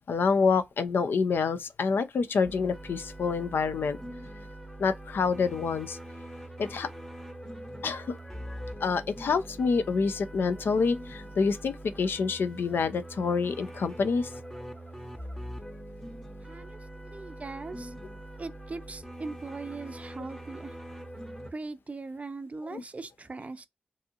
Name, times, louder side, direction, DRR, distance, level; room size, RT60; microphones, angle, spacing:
voice 1, 0.1-4.0 4.8-6.0 6.6-6.9 7.8-8.2 8.8-14.3 22.7-22.8, left 5 dB, 80° left, 0.4 m, -27 dB
sound 1, 2.4-21.5, right 1 dB, 10° left, 0.7 m, -43 dB
voice 2, 16.4-17.9 18.4-20.7 21.5-23.7, right 3 dB, 40° right, 0.4 m, -40 dB
2.7 x 2.4 x 2.7 m
cardioid pair, 45°, 4 cm